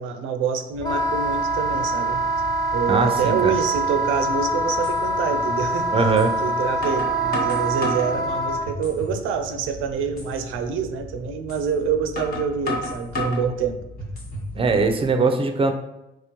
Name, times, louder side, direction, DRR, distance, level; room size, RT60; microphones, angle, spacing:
voice 1, 0.0-2.2 2.7-13.8, right 6 dB, 90° right, 7 dB, 0.4 m, -26 dB
sound 1, 0.7-15.1, left 3 dB, 80° left, 0.6 m, -40 dB
Wind instrument woodwind instrument, 0.8-8.7, right 2 dB, 20° left, 0.8 m, -24 dB
voice 2, 2.9-3.5 5.9-6.4 14.6-15.7, right 4 dB, 25° right, 7 dB, 0.5 m, -21 dB
sound 2, 4.8-5.0 6.2-6.3 6.8-8.1 8.7-9.2 9.6-9.7 10.2-10.3 11.5-11.6 12.2-13.5 14.0-14.5, left 2 dB, 50° left, 1.3 m, -31 dB
3.5 x 3.0 x 2.9 m, 0.91 s
cardioid pair, 90°, 20 cm